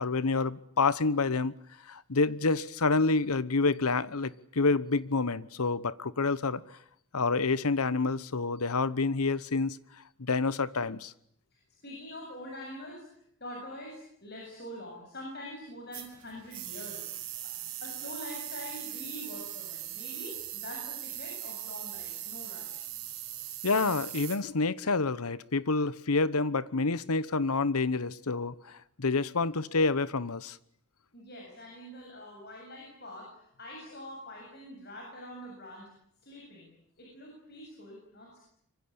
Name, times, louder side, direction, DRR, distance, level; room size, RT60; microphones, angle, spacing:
voice 1, 0.0-1.5 1.9-6.6 7.1-9.8 10.2-11.1 23.6-30.6, left 3 dB, 85° left, 1.1 m, -28 dB
voice 2, 11.5-13.0 13.4-17.1 17.8-22.8 31.1-33.3 33.6-35.9 36.2-36.7 37.0-38.4, left 1 dB, 45° left, 7.6 m, -44 dB
sound 1, 15.9-24.4, right 13 dB, 65° right, 5.5 m, -40 dB
25.5 x 24.5 x 8.7 m
head